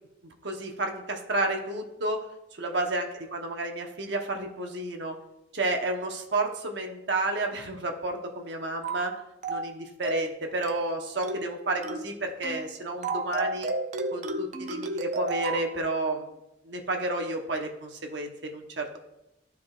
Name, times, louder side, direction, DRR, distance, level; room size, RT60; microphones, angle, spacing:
voice 1, 0.2-2.2 2.6-5.2 5.5-9.1 9.5-13.7 14.1-16.3 16.6-19.0, right 2 dB, 70° right, 3 dB, 1.0 m, -31 dB
sound 1, 8.8-9.1 9.4-9.7 10.0-10.3 10.6-10.9 11.2-11.5 11.8-12.1 12.4-12.7 13.0-15.7, right 2 dB, 40° right, 0.5 m, -32 dB
12.5 x 4.7 x 2.4 m, 0.91 s
head